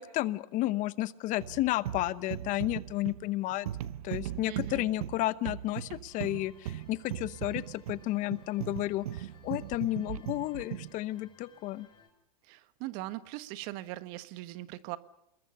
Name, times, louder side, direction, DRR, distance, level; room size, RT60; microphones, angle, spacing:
voice 1, 0.0-3.7 4.0-11.9, left 16 dB, 40° left, 17 dB, 0.9 m, -32 dB
sound 1, 1.4-11.0, right 12 dB, 70° right, 0.9 m, -39 dB
voice 2, 4.4-4.9 12.4-15.0, right 17 dB, 50° right, 13 dB, 1.4 m, -40 dB
sound 2, 6.1-12.1, left 6 dB, 25° left, 6.1 m, -62 dB
27.5 x 21.5 x 5.6 m, 0.76 s
hypercardioid pair, 110°, 19 cm